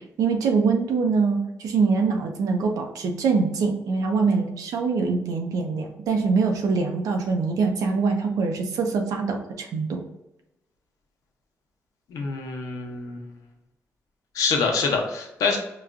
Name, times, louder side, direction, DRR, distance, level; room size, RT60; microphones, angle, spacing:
voice 1, 0.2-10.0, right 4 dB, 85° right, 3 dB, 0.6 m, -24 dB
voice 2, 12.1-13.2 14.3-15.6, left 4 dB, 85° left, 2 dB, 0.7 m, -25 dB
4.8 x 2.3 x 2.4 m, 0.92 s
cardioid pair, 90°, 6 cm